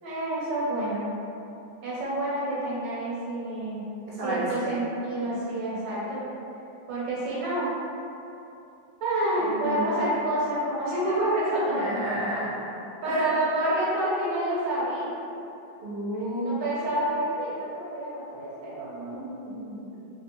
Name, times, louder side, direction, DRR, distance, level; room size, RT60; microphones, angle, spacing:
voice 1, 0.0-1.1 1.8-3.8 4.2-6.3 6.9-7.7 9.0-11.9 13.0-15.1 16.1-19.2, right 1 dB, 85° right, -7 dB, 1.6 m, -28 dB
voice 2, 4.1-4.7 9.4-10.1 11.6-12.5 13.0-13.3 15.8-16.5 19.1-20.0, equal, 50° right, -8 dB, 0.7 m, -32 dB
3.3 x 2.8 x 2.8 m, 2.8 s
omnidirectional pair, 1.9 m